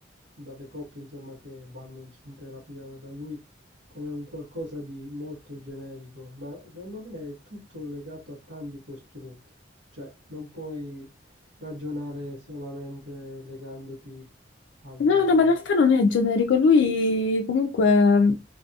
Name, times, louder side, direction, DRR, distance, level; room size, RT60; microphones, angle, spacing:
voice 1, 0.4-3.4 3.9-9.3 10.0-11.1 11.6-14.2 14.8-15.6, left 1 dB, 80° right, 1.2 m, -39 dB
voice 2, 15.0-18.4, left 4 dB, 70° left, 0.3 m, -20 dB
2.7 x 2.6 x 2.3 m
head